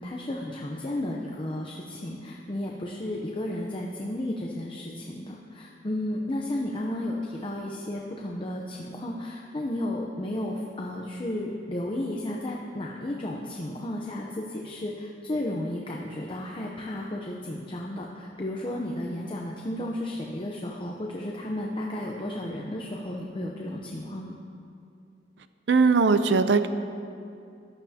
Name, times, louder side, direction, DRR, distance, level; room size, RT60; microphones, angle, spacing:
voice 1, 0.0-24.4, left 1 dB, 30° left, -1 dB, 0.7 m, -33 dB
voice 2, 25.7-26.7, right 4 dB, 75° right, 11 dB, 0.5 m, -20 dB
14.5 x 11.5 x 2.9 m, 2.5 s
head